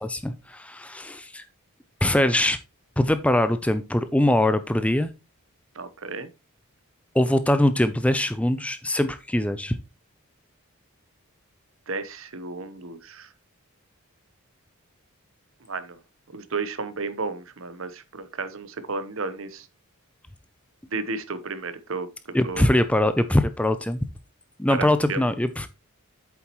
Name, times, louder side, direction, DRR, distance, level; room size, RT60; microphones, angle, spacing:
voice 1, 0.0-1.4 2.0-2.6 3.0-5.1 7.1-9.8 22.3-24.0 24.6-25.7, left 1 dB, 5° left, 0.5 m, -22 dB
voice 2, 5.7-6.3 11.9-13.3 15.7-16.0 16.3-19.7 20.9-22.1 22.4-22.7 24.7-25.3, right 4 dB, 60° right, 1.0 m, -33 dB
8.6 x 7.1 x 3.0 m
head